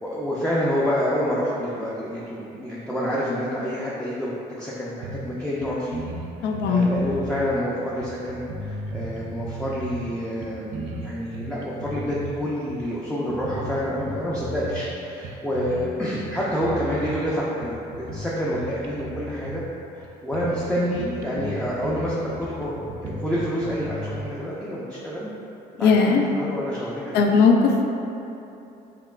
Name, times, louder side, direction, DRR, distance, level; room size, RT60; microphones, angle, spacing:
voice 1, 0.0-6.0 6.4-19.6 19.9-25.3 25.8-27.4, equal, 5° left, -7 dB, 0.4 m, -28 dB
sound 1, 5.0-5.4 5.6-5.7 5.9-7.6 8.0-10.1 10.4-12.3 12.7-12.9 13.3-14.9 15.2-15.9 16.2-17.2 17.6-19.7 20.0-20.1 20.3-20.7 20.9-24.2, right 2 dB, 85° right, 0.4 m, -35 dB
voice 2, 6.4-6.9 25.8-26.2 27.1-27.8, left 5 dB, 80° left, 2 dB, 0.4 m, -18 dB
5.6 x 2.2 x 2.3 m, 2.9 s
cardioid pair, 110°, 17 cm